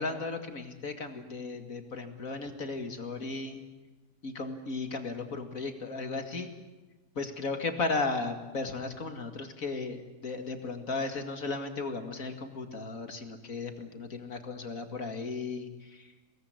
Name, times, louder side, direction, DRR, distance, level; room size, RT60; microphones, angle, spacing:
voice 1, 0.0-3.6 4.2-6.5 7.2-16.1, left 3 dB, 60° left, 6 dB, 2.5 m, -35 dB
24.5 x 19.0 x 9.7 m, 1.2 s
omnidirectional pair, 1.7 m